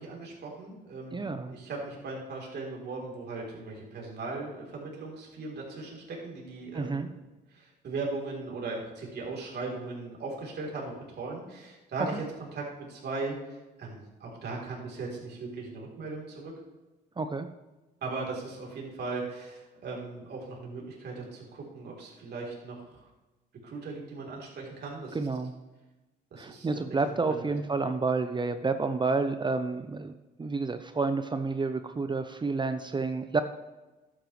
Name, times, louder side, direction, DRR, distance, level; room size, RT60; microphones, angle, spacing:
voice 1, 0.0-7.1 7.5-12.2 12.5-16.5 18.0-23.0 23.6-25.2 26.3-26.7 27.2-27.6, right 3 dB, 60° right, -2 dB, 3.6 m, -38 dB
voice 2, 1.1-1.5 6.7-7.1 12.1-12.2 17.2-17.5 25.1-25.5 26.4-30.1 30.4-33.4, right 4 dB, 25° right, 9 dB, 0.7 m, -29 dB
12.0 x 9.2 x 3.3 m, 1.1 s
supercardioid pair, 80°, 20 cm